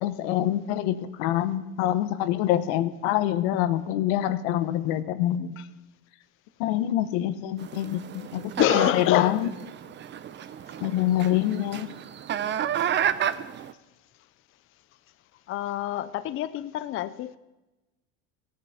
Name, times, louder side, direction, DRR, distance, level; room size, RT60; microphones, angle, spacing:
voice 1, 0.0-5.5 6.6-9.4 10.8-11.9, left 12 dB, 80° left, 12 dB, 1.0 m, -26 dB
sound 1, 7.6-13.7, right 9 dB, 35° right, 0.6 m, -31 dB
voice 2, 8.6-9.5 15.5-17.4, left 12 dB, 40° left, 14 dB, 0.5 m, -26 dB
16.0 x 8.6 x 5.7 m, 1.1 s
supercardioid pair, 110°, 32 cm